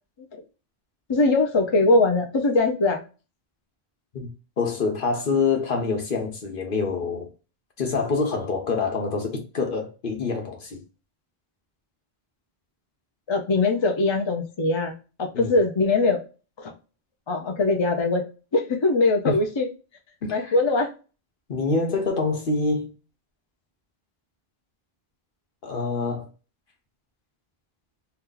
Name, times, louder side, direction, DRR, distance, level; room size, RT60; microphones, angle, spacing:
voice 1, 1.1-3.0 13.3-16.2 16.6-16.7 17.3-18.2 18.5-19.7 20.3-20.9, left 3 dB, 35° left, 0.5 m, -21 dB
voice 2, 4.6-7.3 7.8-10.8 15.3-15.5 19.2-19.4 20.2-20.5 21.5-22.9 25.6-26.3, left 4 dB, 60° left, 1.0 m, -26 dB
2.9 x 2.3 x 3.7 m
omnidirectional pair, 1.0 m